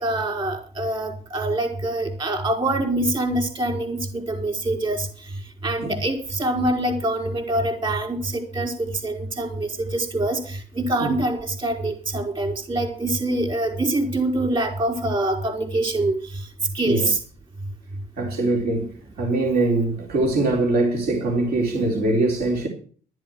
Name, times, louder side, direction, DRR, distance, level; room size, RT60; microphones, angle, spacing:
voice 1, 0.0-5.1 5.6-8.7 9.0-16.2 16.7-17.2, right 1 dB, 30° right, 4.9 m, -25 dB
voice 2, 18.2-18.8 19.2-22.7, right 2 dB, 65° right, 4.1 m, -22 dB
13.0 x 7.7 x 7.8 m
cardioid pair, 110°, 17 cm